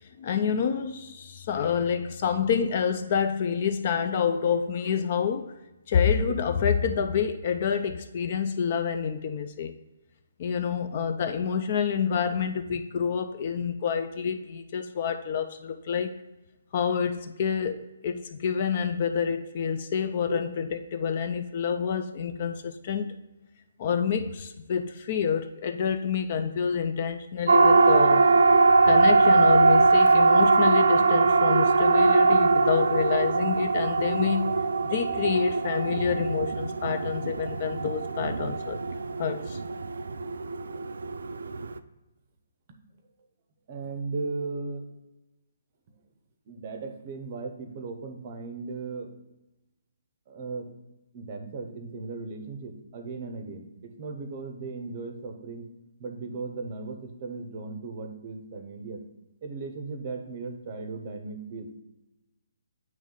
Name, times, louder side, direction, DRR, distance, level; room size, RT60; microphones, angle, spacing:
voice 1, 0.2-5.5 5.9-9.7 10.4-16.1 16.7-23.2 23.8-28.3 28.8-34.5 34.8-38.8 39.2-39.6, left 7 dB, 35° left, 8 dB, 0.3 m, -28 dB
Siren, 27.5-41.8, right 3 dB, 80° right, 0.3 m, -21 dB
voice 2, 43.7-45.0 46.5-49.1 50.3-50.7 51.1-55.7 56.0-59.0 59.4-61.8, right 4 dB, 30° right, 4 dB, 0.6 m, -37 dB
8.7 x 3.1 x 3.7 m, 1.0 s
hypercardioid pair, 170°, 0 cm